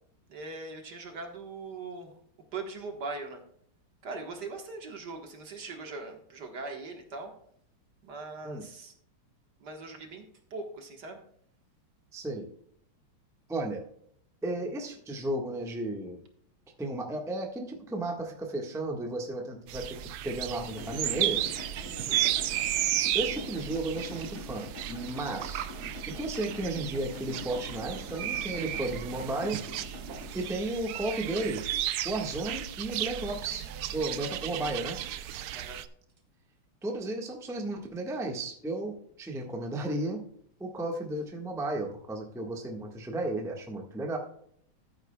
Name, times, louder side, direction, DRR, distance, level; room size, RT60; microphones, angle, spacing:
voice 1, 0.3-2.1 2.5-3.4 4.0-7.3 8.0-8.9 9.6-10.2 10.5-11.2 21.7-22.4 35.5-35.8, right 3 dB, 55° right, 4 dB, 1.8 m, -40 dB
voice 2, 12.1-12.5 13.5-13.8 14.4-16.2 16.8-21.5 23.1-25.7 26.1-29.6 30.3-31.6 32.0-33.6 33.9-35.0 36.8-40.2 40.6-44.2, right 2 dB, ahead, 1 dB, 1.0 m, -34 dB
sound 1, 19.7-35.9, right 12 dB, 85° right, 0.8 m, -34 dB
Idling, 20.7-30.3, left 2 dB, 35° left, 3.8 m, -45 dB
14.0 x 8.8 x 2.3 m, 0.66 s
omnidirectional pair, 2.3 m